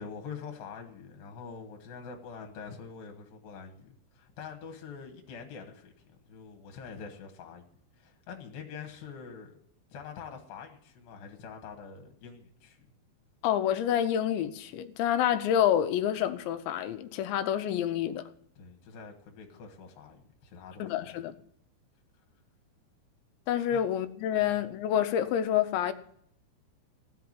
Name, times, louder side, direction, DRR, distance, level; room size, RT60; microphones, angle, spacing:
voice 1, 0.0-5.9 6.3-9.5 9.9-12.8 18.6-21.1 23.7-23.8, left 6 dB, 65° left, 2.7 m, -45 dB
voice 2, 13.4-18.2 20.8-21.3 23.5-25.9, left 10 dB, 80° left, 2.8 m, -28 dB
16.0 x 5.8 x 9.4 m
omnidirectional pair, 5.5 m